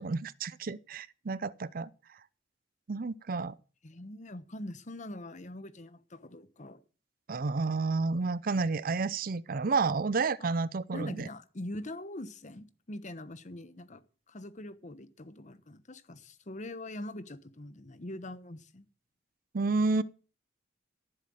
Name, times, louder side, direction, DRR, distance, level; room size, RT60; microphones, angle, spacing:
voice 1, 0.0-1.9 2.9-3.6 7.3-11.3 19.5-20.0, right 4 dB, 50° right, 0.5 m, -30 dB
voice 2, 3.8-6.8 10.4-10.5 10.9-18.9, left 1 dB, 45° left, 1.1 m, -43 dB
14.5 x 7.5 x 7.7 m
head